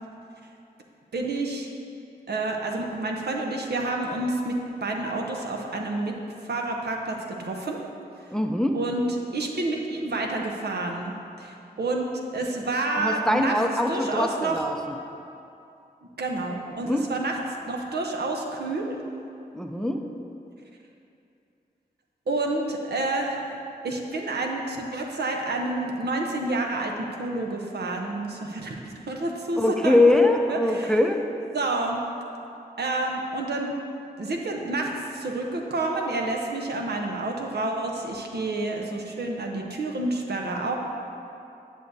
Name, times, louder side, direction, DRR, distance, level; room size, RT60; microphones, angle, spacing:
voice 1, 1.1-1.7 2.3-6.1 6.4-7.8 8.7-9.1 9.3-13.5 13.9-14.6 16.2-17.3 17.7-19.0 22.3-23.6 23.8-30.1 30.5-31.2 31.5-32.0 32.8-33.7 34.2-40.8, right 2 dB, 80° right, 1 dB, 0.8 m, -29 dB
voice 2, 8.3-8.8 13.0-14.8 16.8-17.0 19.5-20.0 29.6-31.2, left 1 dB, 5° left, 4 dB, 0.5 m, -22 dB
9.9 x 6.2 x 2.7 m, 2.7 s
cardioid pair, 50°, 17 cm